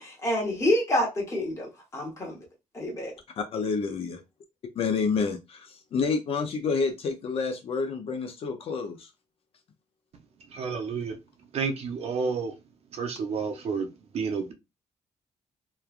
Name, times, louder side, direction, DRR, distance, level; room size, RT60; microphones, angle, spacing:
voice 1, 0.0-2.4 2.7-3.1, left 1 dB, 25° left, 1.1 m, -28 dB
voice 2, 3.4-4.2 4.8-9.1, left 5 dB, 50° left, 0.5 m, -29 dB
voice 3, 10.5-11.2 11.5-12.5 12.9-14.5, right 5 dB, 55° right, 0.6 m, -30 dB
3.1 x 2.3 x 2.3 m
cardioid pair, 155°, 13 cm